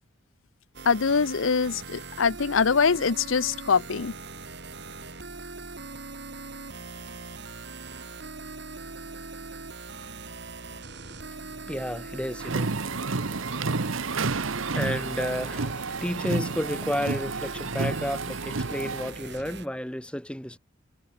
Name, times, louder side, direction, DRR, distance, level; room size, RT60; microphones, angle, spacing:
sound 1, 0.7-19.7, right 3 dB, 55° right, 3.5 m, -41 dB
voice 1, 0.8-4.1, left 5 dB, 75° left, 0.7 m, -23 dB
voice 2, 10.8-20.6, equal, 5° left, 1.7 m, -33 dB
sound 2, 12.4-19.1, right 3 dB, 80° right, 1.1 m, -30 dB
head